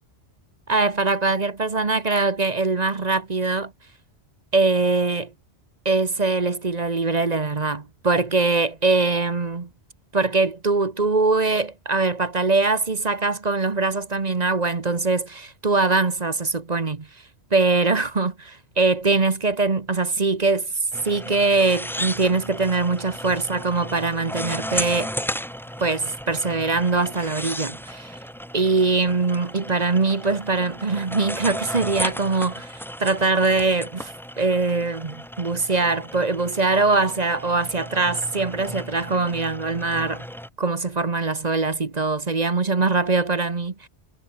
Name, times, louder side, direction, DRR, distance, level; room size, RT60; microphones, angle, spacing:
voice 1, 0.7-3.7 4.5-5.3 5.8-9.7 10.1-17.1 17.5-20.7 21.0-25.1 25.8-28.2 28.5-34.1 34.4-40.2 40.6-43.9, right 3 dB, 40° right, 1.3 m, -22 dB
sound 1, 20.9-40.5, equal, ahead, 3.2 m, -34 dB
omnidirectional pair, 1.1 m